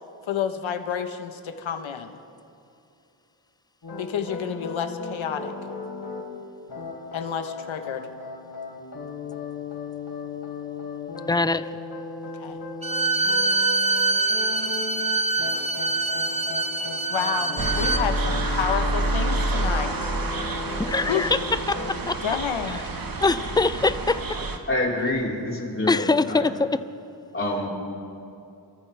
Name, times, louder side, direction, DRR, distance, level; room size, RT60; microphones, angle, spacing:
voice 1, 0.2-2.2 4.0-5.5 7.1-8.1 12.4-12.6 17.1-20.1 21.1-21.3 22.2-22.8, left 8 dB, 90° left, 7 dB, 1.1 m, -29 dB
sound 1, 3.8-6.2 6.7-22.0, left 4 dB, 55° left, 4.0 m, -36 dB
voice 2, 11.3-11.6 20.9-21.4 21.9-22.2 23.2-24.2 25.9-26.8, left 3 dB, 10° left, 13 dB, 0.4 m, -22 dB
Bowed string instrument, 12.8-18.0, right 3 dB, 15° right, 0.9 m, -24 dB
sound 2, 17.6-24.6, right 2 dB, 50° right, 1.5 m, -28 dB
voice 3, 24.7-26.5 27.3-27.7, left 1 dB, 25° left, -5 dB, 4.1 m, -27 dB
27.0 x 14.0 x 3.4 m, 2.7 s
cardioid pair, 75°, 46 cm